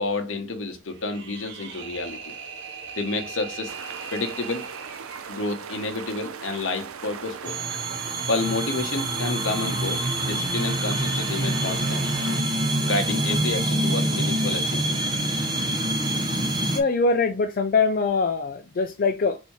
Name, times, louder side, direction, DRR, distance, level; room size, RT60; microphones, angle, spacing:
voice 1, 0.0-2.3 3.0-3.7 4.1-4.7 5.3-7.6 8.3-12.0 12.8-15.0, left 3 dB, 60° left, 0.9 m, -29 dB
sound 1, 0.9-5.3, right 6 dB, 55° right, 0.9 m, -39 dB
sound 2, 3.7-12.4, right 7 dB, 75° right, 0.5 m, -39 dB
sound 3, 7.5-16.8, right 1 dB, 20° right, 0.6 m, -26 dB
voice 2, 16.7-19.4, left 4 dB, 40° left, 0.4 m, -23 dB
4.2 x 2.7 x 4.6 m
head